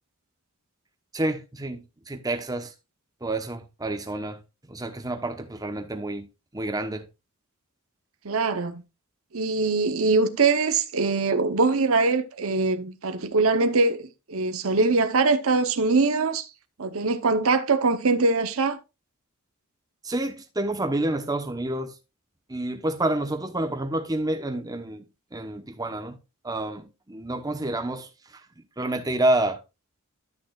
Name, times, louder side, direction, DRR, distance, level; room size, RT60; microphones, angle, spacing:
voice 1, 1.1-2.7 3.2-4.4 4.7-6.3 6.5-7.1 20.0-21.9 22.5-26.2 26.4-28.1 28.8-29.6, right 1 dB, 15° right, 0.9 m, -28 dB
voice 2, 8.2-8.8 9.3-16.5 16.8-18.8, right 3 dB, 75° right, 0.8 m, -23 dB
13.5 x 6.4 x 2.4 m
head